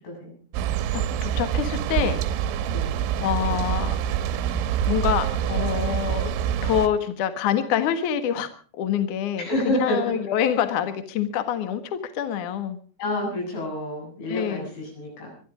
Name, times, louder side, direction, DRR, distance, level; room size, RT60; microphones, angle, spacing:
voice 1, 0.0-0.8 2.7-2.9 9.4-10.0 13.0-15.3, left 1 dB, 85° left, 0 dB, 10.5 m, -29 dB
sound 1, 0.5-6.9, right 10 dB, 85° right, 3.4 m, -26 dB
voice 2, 0.9-2.4 3.2-4.0 4.9-6.3 6.6-12.8 14.3-14.7, left 9 dB, 60° left, 9 dB, 2.2 m, -26 dB
25.0 x 11.5 x 5.0 m, 0.42 s
omnidirectional pair, 5.5 m